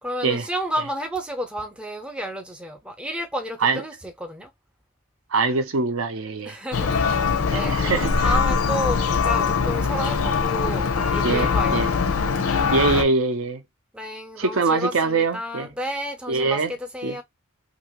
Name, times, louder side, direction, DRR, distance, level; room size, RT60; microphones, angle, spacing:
voice 1, 0.0-4.5 6.4-11.9 13.9-17.2, equal, 5° right, 0.4 m, -31 dB
voice 2, 5.3-6.6 7.5-8.2 11.2-11.9 12.7-13.6 14.4-15.7 16.3-16.7 17.0-17.1, right 4 dB, 70° right, 0.6 m, -23 dB
Church bell, 6.7-13.0, left 5 dB, 80° left, 0.6 m, -22 dB
2.8 x 2.6 x 2.9 m
head